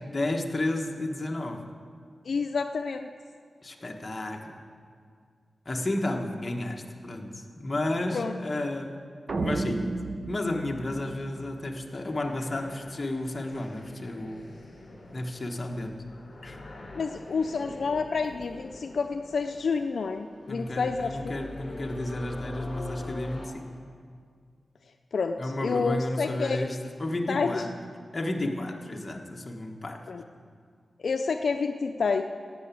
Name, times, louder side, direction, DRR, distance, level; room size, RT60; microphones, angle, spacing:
voice 1, 0.0-1.7 3.6-4.6 5.6-9.0 9.4-14.5 15.1-16.0 16.4-16.6 20.5-23.7 25.4-27.7 28.1-30.1, left 1 dB, 30° left, 1 dB, 1.4 m, -32 dB
voice 2, 2.2-3.1 8.1-8.4 16.9-21.4 25.1-26.6 27.3-27.6 30.1-30.2 31.0-32.2, left 4 dB, 75° left, 6 dB, 0.5 m, -29 dB
sound 1, 9.3-11.7, right 2 dB, 55° right, 0.7 m, -32 dB
sound 2, 10.3-23.5, left 2 dB, 45° left, 3.1 m, -45 dB
16.5 x 6.9 x 8.4 m, 2.1 s
wide cardioid pair, 105°, 0 cm